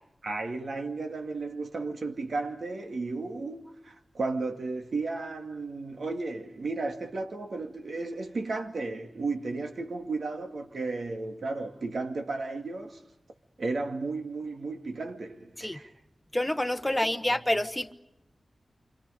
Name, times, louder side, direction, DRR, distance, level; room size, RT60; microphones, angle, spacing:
voice 1, 0.2-13.0 13.6-15.9 16.9-17.4, right 3 dB, 70° right, 2.2 m, -34 dB
voice 2, 16.3-17.9, left 1 dB, 10° left, 1.2 m, -28 dB
29.5 x 26.0 x 5.2 m
wide cardioid pair, 95°, 0 cm